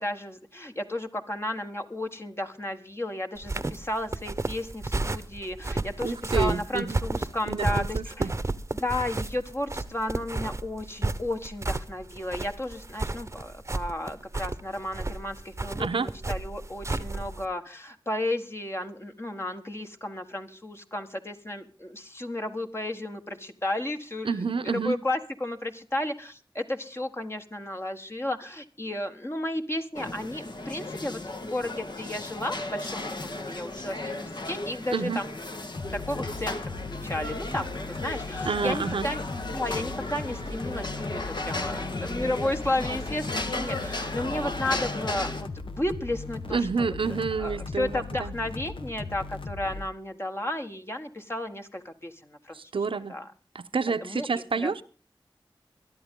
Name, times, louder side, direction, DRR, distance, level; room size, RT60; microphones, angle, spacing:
voice 1, 0.0-8.3 8.8-24.4 24.7-35.3 35.9-46.9 47.4-52.6 53.1-53.3 53.9-54.3 54.6-54.7, left 1 dB, 30° left, 5 dB, 1.5 m, -33 dB
sound 1, 3.4-17.5, right 2 dB, 30° right, 0.9 m, -32 dB
voice 2, 6.0-7.0 7.5-8.3 15.8-16.1 24.2-24.9 34.9-35.2 38.4-39.1 46.5-48.3 52.5-53.2 53.5-54.8, right 5 dB, 90° right, 12 dB, 0.9 m, -29 dB
sound 2, 29.9-45.4, left 2 dB, 60° left, 1.7 m, -35 dB
sound 3, 35.7-49.9, left 3 dB, 80° left, 1.3 m, -38 dB
22.5 x 11.5 x 3.7 m, 0.36 s
wide cardioid pair, 80°, 9 cm